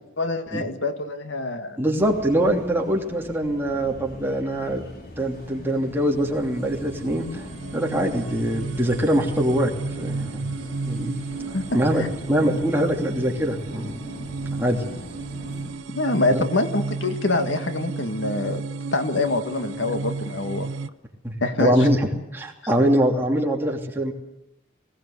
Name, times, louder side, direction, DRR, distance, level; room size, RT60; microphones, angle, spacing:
voice 1, 0.2-1.8 11.5-11.7 15.9-18.6 18.9-20.7 21.4-21.8, left 2 dB, 70° left, 7 dB, 1.8 m, -25 dB
voice 2, 1.8-4.8 5.2-7.4 7.7-10.4 10.8-11.1 11.7-13.9 14.6-14.8 16.3-16.4 21.2-22.1 22.3-24.1, right 1 dB, 10° right, 0 dB, 3.0 m, -23 dB
sound 1, 2.0-15.7, equal, 50° left, 3.7 m, -41 dB
sound 2, 5.6-20.9, right 3 dB, 85° right, 0.7 m, -33 dB
20.5 x 17.5 x 8.2 m, 0.91 s
head